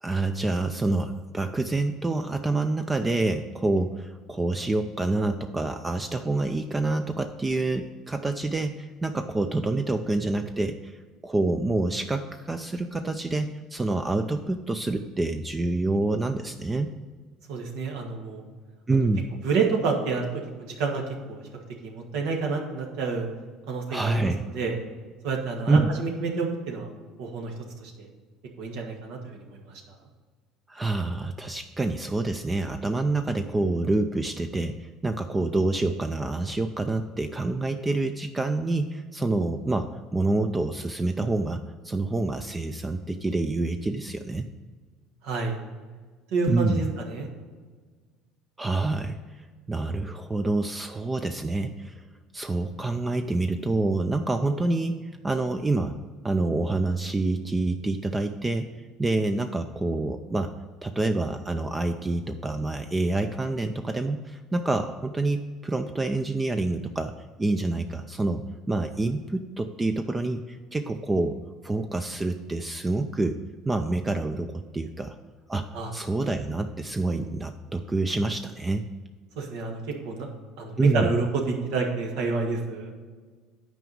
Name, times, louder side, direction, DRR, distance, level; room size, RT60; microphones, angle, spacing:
voice 1, 0.0-16.9 18.9-19.3 23.9-24.4 25.7-25.9 30.7-44.5 46.5-46.8 48.6-52.1 52.3-56.0 56.2-58.7 59.0-60.5 60.8-67.1 67.4-71.4 71.6-73.4 73.6-75.2 75.5-78.9 80.8-81.1, right 2 dB, 15° right, 7 dB, 0.4 m, -27 dB
voice 2, 17.5-18.4 19.4-20.3 20.8-21.4 21.8-23.3 23.7-24.8 25.2-26.9 27.2-27.5 27.8-28.1 28.6-29.4 45.2-45.6 46.3-47.3 75.7-75.9 79.3-80.3 80.6-82.9, right 4 dB, 75° right, 1 dB, 1.7 m, -28 dB
9.3 x 4.8 x 5.4 m, 1.5 s
supercardioid pair, 110°, 0 cm